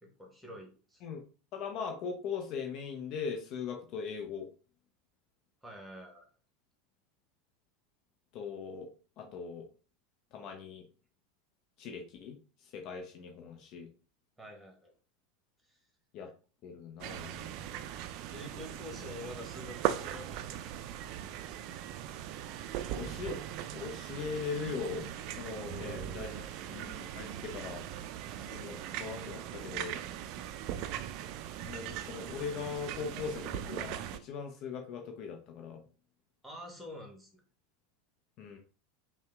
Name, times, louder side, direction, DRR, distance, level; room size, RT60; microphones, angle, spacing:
voice 1, 0.0-1.0 5.6-6.2 14.4-14.9 15.7-15.8 18.3-20.6 20.8-20.9 25.7-26.4 36.4-37.3, left 1 dB, 5° right, 1 dB, 1.4 m, -47 dB
voice 2, 1.5-4.5 8.3-8.9 9.2-9.6 10.3-10.8 11.8-12.4 12.6-13.9 16.1-16.3 16.6-17.5 22.9-23.4 23.7-27.8 28.3-30.0 31.6-35.8 38.4-38.6, left 6 dB, 45° left, 4 dB, 0.7 m, -40 dB
sound 1, 17.0-34.2, right 11 dB, 50° right, 0.4 m, -39 dB
5.4 x 2.2 x 3.4 m, 0.37 s
figure-of-eight pair, 80°, 0 cm